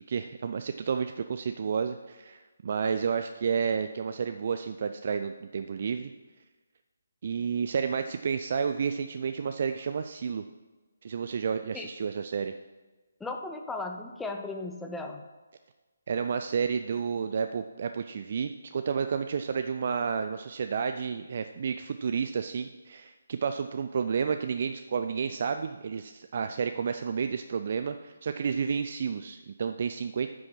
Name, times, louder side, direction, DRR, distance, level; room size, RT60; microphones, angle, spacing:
voice 1, 0.1-6.1 7.2-10.4 11.0-12.5 16.1-30.3, right 6 dB, 40° right, 8 dB, 0.4 m, -31 dB
voice 2, 13.2-15.2, left 3 dB, 5° left, 3 dB, 0.7 m, -36 dB
9.6 x 6.1 x 5.8 m, 1.2 s
figure-of-eight pair, 145°, 0 cm